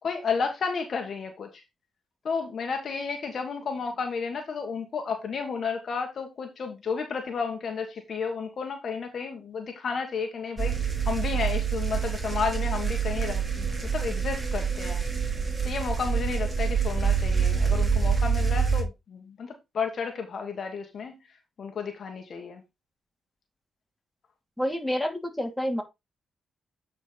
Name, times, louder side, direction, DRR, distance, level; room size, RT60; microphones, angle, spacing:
voice 1, 0.0-1.5 2.2-10.8 11.0-15.0 15.6-21.1 21.6-22.6, left 5 dB, 60° left, 1.6 m, -32 dB
sound 1, 10.6-18.8, right 6 dB, 25° right, 3.0 m, -26 dB
voice 2, 24.6-25.8, equal, 5° left, 2.8 m, -28 dB
8.7 x 4.6 x 4.0 m
cardioid pair, 65°, 0 cm